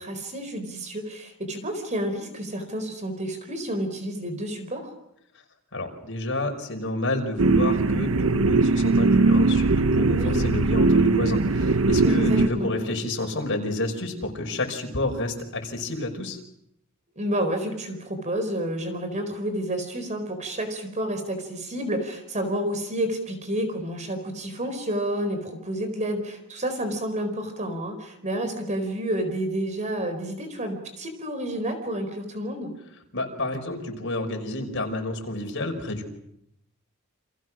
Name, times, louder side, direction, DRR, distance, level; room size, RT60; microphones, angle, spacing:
voice 1, 0.0-4.9 10.1-10.5 12.0-12.7 17.2-32.7, right 1 dB, 35° right, 8 dB, 4.4 m, -30 dB
voice 2, 5.7-16.4 33.1-36.1, left 2 dB, 60° left, 4 dB, 5.6 m, -30 dB
sound 1, 7.4-12.5, right 3 dB, 70° right, 1.0 m, -20 dB
30.0 x 27.0 x 6.3 m, 0.78 s
head